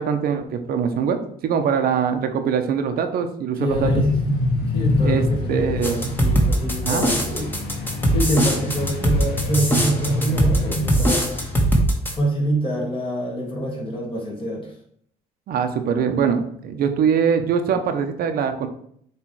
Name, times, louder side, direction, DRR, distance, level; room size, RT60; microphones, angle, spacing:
voice 1, 0.0-3.9 5.0-5.2 5.5-6.0 6.8-7.1 15.5-18.7, right 7 dB, 65° right, 7 dB, 0.9 m, -22 dB
voice 2, 3.6-4.1 4.6-11.8 12.2-14.7, right 1 dB, 30° left, -2 dB, 2.4 m, -26 dB
sound 1, 3.7-11.6, left 2 dB, 85° left, 1.3 m, -26 dB
sound 2, 5.8-12.1, right 1 dB, 10° left, 1.5 m, -20 dB
7.6 x 3.3 x 4.7 m, 0.65 s
cardioid pair, 115°, 16 cm